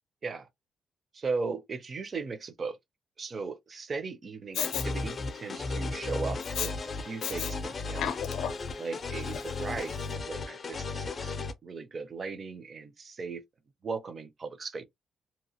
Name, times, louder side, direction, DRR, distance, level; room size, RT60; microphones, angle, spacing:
voice 1, 1.1-2.8 3.2-6.7 7.0-8.1 8.8-11.4 11.6-13.4 13.8-14.8, right 4 dB, 35° right, 0.5 m, -37 dB
Respiratory sounds, 4.5-4.9 6.4-6.7 7.2-7.5 7.9-8.7 9.3-9.4, left 9 dB, 90° left, 0.4 m, -33 dB
sound 1, 4.6-11.5, left 3 dB, 35° left, 0.5 m, -35 dB
2.8 x 2.5 x 2.8 m
cardioid pair, 130°, 0 cm